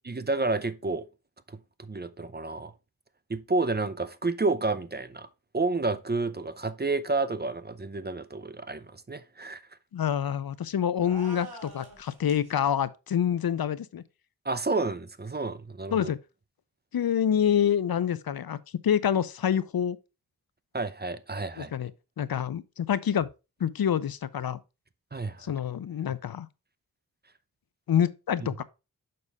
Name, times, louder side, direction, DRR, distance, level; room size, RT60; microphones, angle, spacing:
voice 1, 0.0-1.0 1.8-2.7 3.3-5.3 5.5-9.6 14.5-16.1 20.7-21.7 25.1-25.4, right 3 dB, 25° right, 0.6 m, -30 dB
voice 2, 9.9-14.0 15.9-16.2 16.9-18.6 18.8-20.0 21.6-21.9 22.2-23.3 23.6-24.6 25.4-26.5 27.9-28.6, left 9 dB, 70° left, 0.5 m, -27 dB
sound 1, 11.0-12.5, right 3 dB, 80° right, 2.1 m, -45 dB
6.6 x 5.4 x 3.5 m
wide cardioid pair, 65°, 38 cm